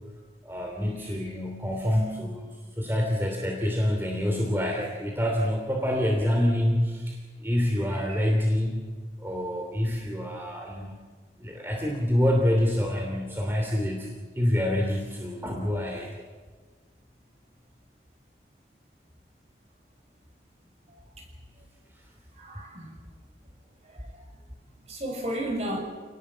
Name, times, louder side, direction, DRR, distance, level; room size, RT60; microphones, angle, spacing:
voice 1, 0.4-2.5 2.8-8.8 9.2-10.9 11.4-14.1 14.3-16.1, left 1 dB, 15° right, 1 dB, 3.0 m, -26 dB
voice 2, 1.0-1.3 8.1-8.3 22.4-22.9 23.9-24.0 24.9-25.8, right 1 dB, 35° right, 2 dB, 6.3 m, -33 dB
29.0 x 20.0 x 7.5 m, 1.5 s
head